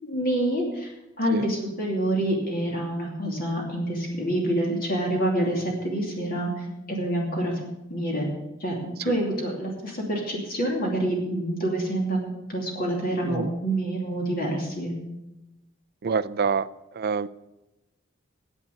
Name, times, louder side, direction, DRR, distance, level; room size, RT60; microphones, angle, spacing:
voice 1, 0.0-0.9 1.2-7.5 7.9-8.3 8.6-8.8 9.0-14.9, right 1 dB, 45° left, -1 dB, 2.8 m, -27 dB
voice 2, 16.0-16.7 16.9-17.3, right 5 dB, 50° right, 15 dB, 0.4 m, -26 dB
10.5 x 8.4 x 8.1 m, 0.97 s
head